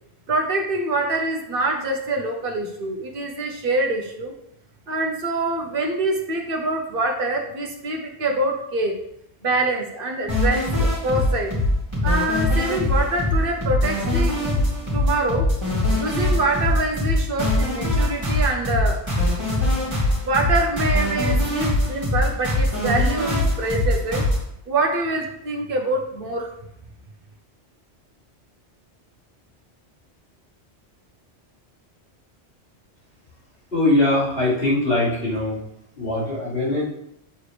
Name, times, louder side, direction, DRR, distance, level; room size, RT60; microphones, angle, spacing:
voice 1, 0.3-4.3 4.9-9.0 9.4-11.5 12.0-14.4 14.9-15.5 16.0-19.0 20.2-24.3 24.7-26.5, right 2 dB, 55° right, 2 dB, 1.2 m, -25 dB
sound 1, 10.3-24.4, left 1 dB, 25° right, 2.7 m, -22 dB
voice 2, 33.7-35.6 36.0-36.8, left 2 dB, 55° left, -9 dB, 3.3 m, -21 dB
7.3 x 4.8 x 3.3 m, 0.76 s
omnidirectional pair, 1.2 m